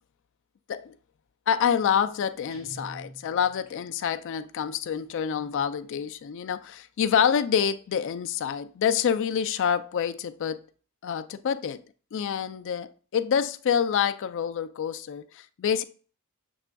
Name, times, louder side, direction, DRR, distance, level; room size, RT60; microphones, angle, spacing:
voice 1, 1.5-10.6 11.0-11.8 12.1-15.8, left 8 dB, 60° left, 0.3 m, -27 dB
Guitar, 2.5-3.7, right 1 dB, 65° right, 1.2 m, -45 dB
7.0 x 3.4 x 2.2 m
head